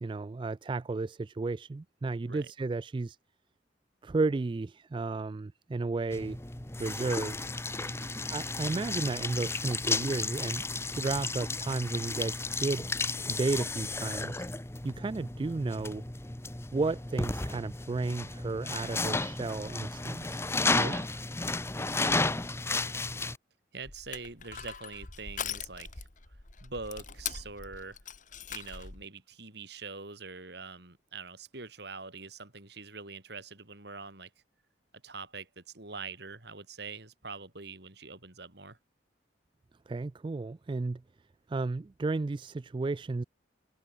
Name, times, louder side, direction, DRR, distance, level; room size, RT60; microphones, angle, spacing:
voice 1, 0.0-3.2 4.0-6.4 6.8-7.4 8.3-10.6 10.9-12.8 13.3-14.4 14.8-16.0 16.7-20.5 20.7-20.9 39.9-41.0 41.5-43.2, right 3 dB, 25° right, 0.3 m, -33 dB
sound 1, 6.1-23.4, left 3 dB, 15° left, 1.1 m, -33 dB
voice 2, 7.8-8.2 20.7-21.1 23.7-26.1 26.6-28.0 28.5-34.3 35.0-38.8, right 4 dB, 60° right, 3.4 m, -44 dB
Crushing, 23.8-29.0, left 7 dB, 45° left, 1.9 m, -41 dB
head